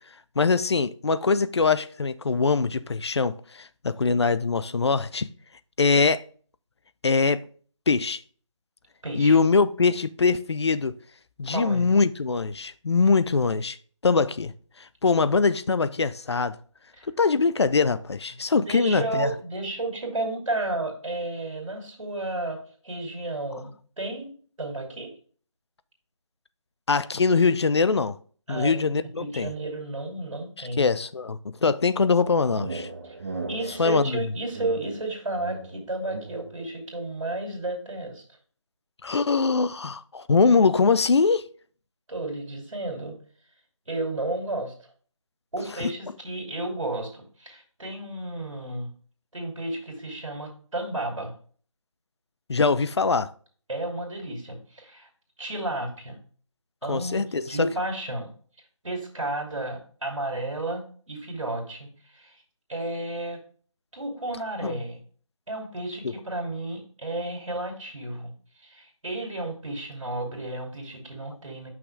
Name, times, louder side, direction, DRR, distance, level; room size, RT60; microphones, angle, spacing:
voice 1, 0.4-5.3 5.8-6.2 7.0-7.5 7.9-8.2 9.2-10.9 11.4-13.8 14.0-14.5 14.8-16.6 17.2-19.3 26.9-28.2 28.5-29.5 30.8-32.9 33.8-34.1 39.0-41.4 45.8-45.9 52.5-53.3 56.9-57.7 64.6-64.8 66.0-66.1, left 4 dB, 55° left, 0.5 m, -22 dB
voice 2, 9.0-9.4 11.5-11.9 17.0-17.1 18.5-25.1 28.5-30.8 33.0-33.2 33.5-38.2 42.1-43.2 43.9-44.7 45.5-48.9 49.3-51.3 53.7-55.1 55.4-56.2 56.8-58.3 58.8-62.4 62.7-63.4 63.9-65.0 65.5-68.3 68.6-71.7, right 2 dB, 75° right, 2.7 m, -32 dB
sound 1, 32.0-36.6, right 3 dB, 30° right, 0.8 m, -38 dB
6.1 x 6.0 x 3.3 m
figure-of-eight pair, 165°, 17 cm